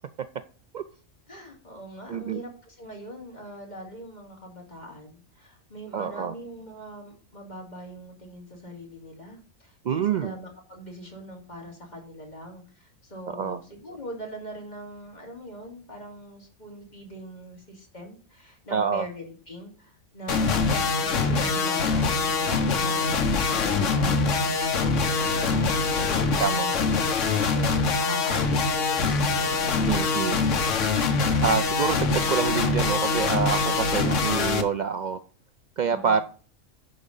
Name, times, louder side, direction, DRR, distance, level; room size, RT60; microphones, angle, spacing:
voice 1, 1.3-29.5 35.9-36.2, equal, 35° left, 0 dB, 3.1 m, -42 dB
voice 2, 2.1-2.4 5.9-6.3 9.8-10.3 13.3-13.6 18.7-19.1 26.4-26.7 29.8-30.4 31.4-35.2 35.8-36.2, right 7 dB, 85° right, 12 dB, 0.4 m, -26 dB
sound 1, 20.3-34.6, left 4 dB, 70° left, 1.4 m, -24 dB
11.0 x 5.0 x 5.4 m, 0.40 s
omnidirectional pair, 1.4 m